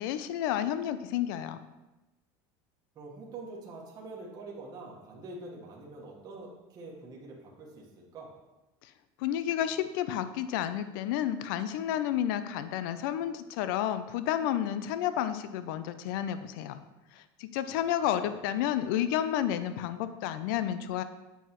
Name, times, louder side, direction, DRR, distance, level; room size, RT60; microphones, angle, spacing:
voice 1, 0.0-1.6 9.2-16.8 17.2-21.0, left 11 dB, 80° left, 12 dB, 0.4 m, -31 dB
voice 2, 2.9-8.3 18.1-18.3, right 3 dB, 35° right, -3 dB, 1.3 m, -45 dB
7.7 x 4.6 x 3.0 m, 1.0 s
supercardioid pair, 125°, 11 cm